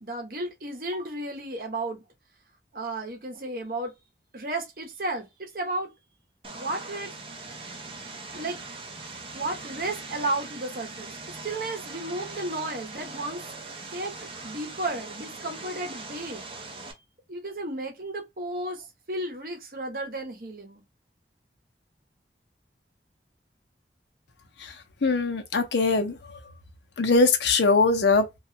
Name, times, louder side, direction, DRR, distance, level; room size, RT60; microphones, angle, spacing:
voice 1, 0.0-2.0 2.7-3.9 4.3-5.9 6.5-7.2 8.3-8.6 9.3-11.1 11.4-13.4 13.9-16.5 17.3-20.8, right 2 dB, 55° right, 0.9 m, -33 dB
Vehicle, 6.4-16.9, right 3 dB, 30° right, 0.6 m, -41 dB
voice 2, 24.6-26.4 27.0-28.4, left 3 dB, 80° left, 0.7 m, -22 dB
3.0 x 2.4 x 2.8 m
head